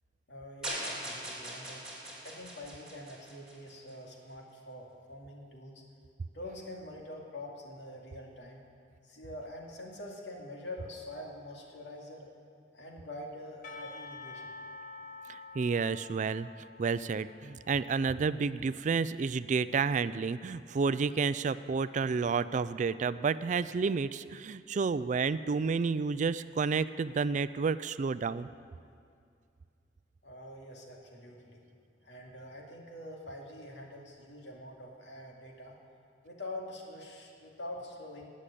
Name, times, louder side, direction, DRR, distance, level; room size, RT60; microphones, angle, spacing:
voice 1, 0.3-1.8 2.2-5.8 6.3-8.6 9.0-12.3 12.7-14.4 30.2-31.6 32.0-35.7 36.2-38.3, left 1 dB, 75° left, -1 dB, 2.3 m, -45 dB
sound 1, 0.6-3.9, right 1 dB, 5° right, 3.3 m, -40 dB
Percussion / Church bell, 13.6-18.7, left 3 dB, 50° left, 1.4 m, -48 dB
voice 2, 15.3-16.5 16.8-28.5, right 5 dB, 45° right, 15 dB, 0.3 m, -30 dB
18.5 x 6.5 x 8.4 m, 2.3 s
head